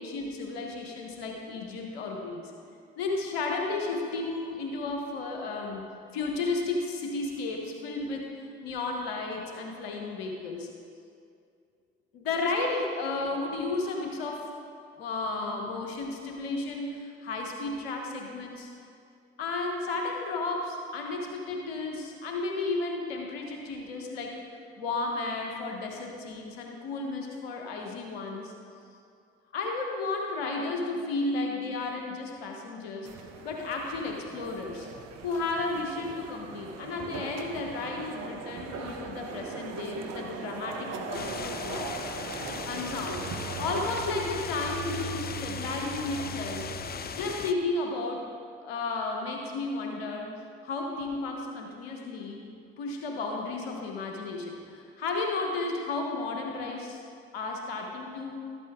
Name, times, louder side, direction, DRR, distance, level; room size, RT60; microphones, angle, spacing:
voice 1, 0.0-2.5 3.0-8.3 8.6-10.7 12.1-14.5 15.0-18.7 19.4-24.4 24.7-28.5 29.5-34.9 35.2-42.0 42.3-43.2 43.6-46.7 47.1-48.3 48.6-50.3 50.6-52.4 52.8-57.0 57.3-58.4, left 3 dB, 90° left, 1 dB, 1.1 m, -33 dB
sound 1, 33.0-43.9, right 5 dB, 60° right, 1.0 m, -40 dB
sound 2, 41.1-47.5, left 6 dB, 30° left, 0.6 m, -38 dB
sound 3, 42.4-47.5, right 10 dB, 90° right, 0.5 m, -42 dB
12.5 x 8.2 x 3.6 m, 2.4 s
hypercardioid pair, 50°, 30 cm